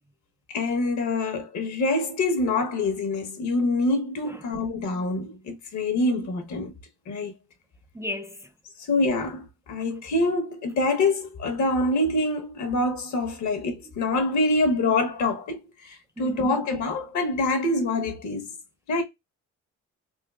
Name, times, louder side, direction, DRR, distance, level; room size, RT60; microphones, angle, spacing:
voice 1, 0.5-6.7 7.1-7.3 8.9-18.5 18.9-19.0, left 2 dB, 70° left, 1.1 m, -25 dB
voice 2, 7.9-8.5 16.2-16.6, left 1 dB, 10° right, 0.4 m, -35 dB
3.7 x 3.0 x 2.3 m
cardioid pair, 90°, 30 cm